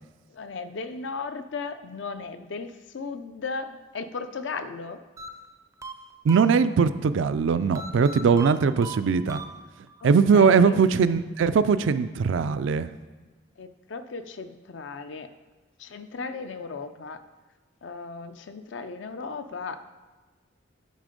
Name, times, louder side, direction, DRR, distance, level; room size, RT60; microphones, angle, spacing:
voice 1, 0.3-5.0 10.0-10.1 10.3-10.8 13.6-15.3 15.8-17.2 17.8-19.9, left 4 dB, 75° left, 10 dB, 0.5 m, -36 dB
sound 1, 5.2-7.0 7.7-10.0, right 2 dB, 15° right, 0.4 m, -40 dB
voice 2, 6.2-9.4 10.0-12.9, right 5 dB, 80° right, 13 dB, 0.4 m, -20 dB
9.4 x 4.1 x 5.1 m, 1.3 s
head